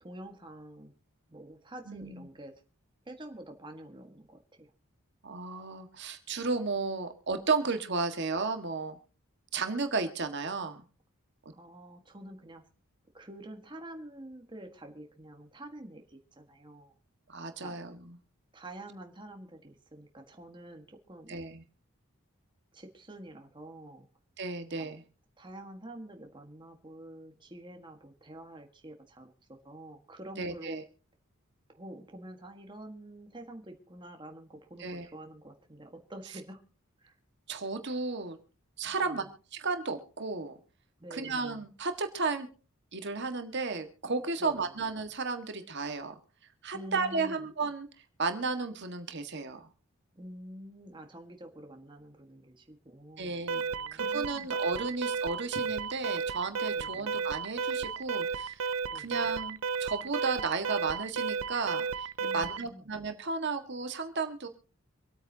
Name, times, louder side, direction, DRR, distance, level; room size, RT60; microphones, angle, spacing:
voice 1, 0.0-0.9 1.3-2.5 3.0-4.7 11.5-12.6 13.1-16.9 17.6-17.8 18.5-21.4 22.7-24.1 24.8-24.9 25.4-30.8 31.7-36.6 37.0-37.1 39.0-39.2 41.0-41.5 44.4-44.7 46.7-47.4 50.1-53.4 53.6-54.6 56.8-57.1 58.9-59.1 62.2-62.8, right 1 dB, 20° right, 4 dB, 1.5 m, -47 dB
voice 2, 1.9-2.2 5.2-9.0 9.5-10.8 17.3-18.2 21.3-21.6 24.4-25.0 30.4-30.8 34.8-35.1 37.5-38.4 38.8-39.2 39.5-40.6 41.1-42.5 42.9-46.2 46.6-47.9 48.2-49.7 53.2-53.6 53.9-58.7 58.9-62.1 62.3-64.5, right 4 dB, 55° right, 7 dB, 1.7 m, -33 dB
Alarm, 53.5-62.7, right 5 dB, 75° right, 0.6 m, -33 dB
26.0 x 8.9 x 2.8 m, 0.39 s
head